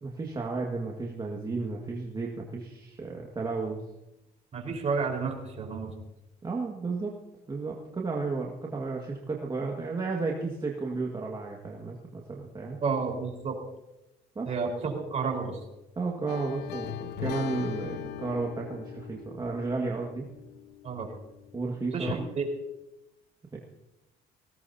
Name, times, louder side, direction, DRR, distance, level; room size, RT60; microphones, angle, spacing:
voice 1, 0.0-3.8 6.4-7.2 7.5-12.8 14.4-14.5 16.0-20.3 21.5-22.3 23.5-23.6, right 3 dB, 25° right, -1 dB, 1.9 m, -33 dB
voice 2, 4.5-5.9 12.8-13.5 14.5-15.6 20.8-21.1 21.9-22.5, right 5 dB, 40° right, 1 dB, 4.5 m, -31 dB
sound 1, 16.3-21.2 22.1-22.2, left 11 dB, 80° left, 0.7 m, -39 dB
20.5 x 18.0 x 2.8 m, 0.92 s
cardioid pair, 110°, 17 cm